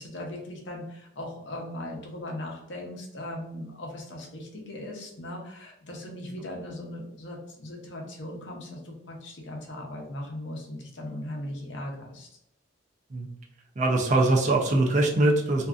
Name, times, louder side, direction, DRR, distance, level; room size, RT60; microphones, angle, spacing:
voice 1, 0.0-12.3, left 1 dB, 65° left, 0 dB, 0.6 m, -38 dB
voice 2, 13.8-15.7, right 2 dB, 40° right, 0 dB, 0.4 m, -22 dB
2.6 x 2.4 x 2.3 m, 0.80 s
head